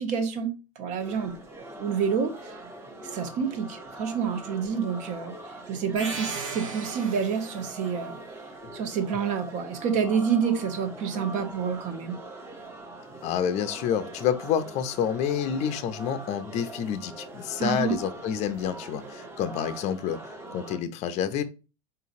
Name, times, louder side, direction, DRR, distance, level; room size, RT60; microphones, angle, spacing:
voice 1, 0.0-1.3 1.8-2.5 3.1-5.3 5.7-8.2 8.7-12.2 17.6-18.0, right 6 dB, 50° right, 1.0 m, -28 dB
sound 1, 1.0-20.8, right 2 dB, 15° right, 0.9 m, -43 dB
sound 2, 6.0-7.9, right 4 dB, 90° right, 0.8 m, -37 dB
voice 2, 13.2-21.4, left 8 dB, 45° left, 0.5 m, -28 dB
3.9 x 3.9 x 2.6 m
hypercardioid pair, 90°, 16 cm